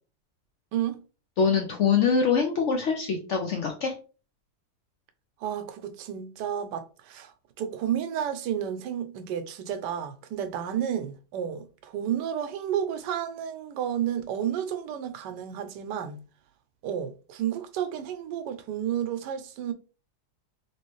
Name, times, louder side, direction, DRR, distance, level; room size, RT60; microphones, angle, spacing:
voice 1, 0.7-1.0 5.4-16.2 16.8-19.7, right 9 dB, 90° right, 1.2 m, -31 dB
voice 2, 1.4-3.9, left 6 dB, 65° left, 0.7 m, -24 dB
3.0 x 3.0 x 3.1 m
omnidirectional pair, 1.8 m